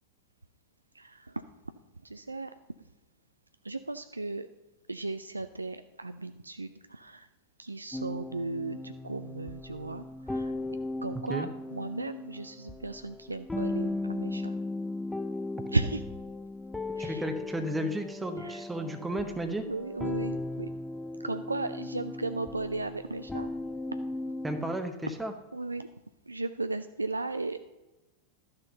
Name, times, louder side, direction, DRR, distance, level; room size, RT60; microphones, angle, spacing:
voice 1, 1.0-1.4 2.0-2.5 3.6-4.5 4.9-7.3 7.6-10.5 11.0-14.5 15.7-16.0 17.0-17.2 18.4-18.6 19.7-20.7 21.2-23.5 25.5-25.9 26.3-27.6, right 3 dB, 80° right, 10 dB, 0.3 m, -35 dB
sound 1, 7.9-24.8, left 2 dB, 5° left, 0.4 m, -37 dB
voice 2, 17.0-19.7 24.4-25.3, right 1 dB, 10° right, 6 dB, 0.9 m, -33 dB
12.0 x 6.7 x 5.5 m, 1.1 s
figure-of-eight pair, 90°, 0 cm